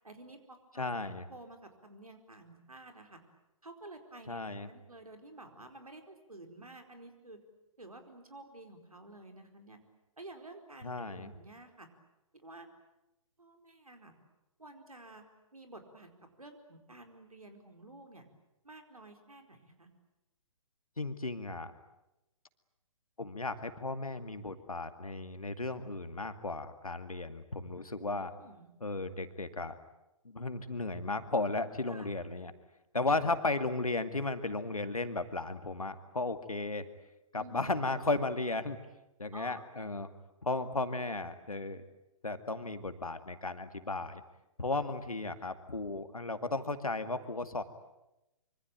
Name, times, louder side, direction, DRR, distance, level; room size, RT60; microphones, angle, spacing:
voice 1, 0.0-0.9 1.3-3.2 3.6-7.4 7.8-9.8 10.2-11.9 12.3-12.7 13.4-14.2 14.6-15.2 15.5-18.3 18.6-19.9 28.1-28.7 31.9-32.1 37.3-38.2 39.3-39.6, right 2 dB, 80° right, 5 dB, 4.6 m, -51 dB
voice 2, 0.8-1.2 4.3-4.7 10.8-11.3 21.0-21.7 23.2-28.3 28.8-29.8 30.2-32.5 32.9-36.8 37.3-38.8 39.2-40.1 40.4-41.8 42.2-44.2 44.6-47.6, left 2 dB, 80° left, 9 dB, 2.3 m, -35 dB
25.5 x 24.5 x 9.0 m, 0.94 s
figure-of-eight pair, 130°, 18 cm